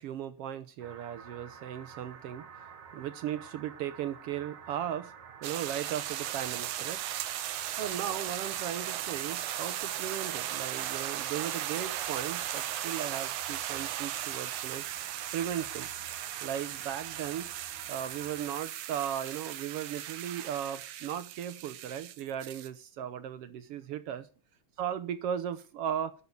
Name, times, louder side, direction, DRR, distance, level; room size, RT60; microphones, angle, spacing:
voice 1, 0.0-2.5 2.9-5.1 5.4-7.0 7.7-14.8 15.3-15.9 16.4-17.5 17.9-24.3 24.8-26.1, right 10 dB, 70° right, 13 dB, 1.5 m, -36 dB
sound 1, 0.8-18.6, right 6 dB, 50° right, 1.6 m, -50 dB
sound 2, 5.4-22.7, right 12 dB, 90° right, 2.4 m, -37 dB
12.0 x 7.1 x 8.3 m, 0.38 s
omnidirectional pair, 3.3 m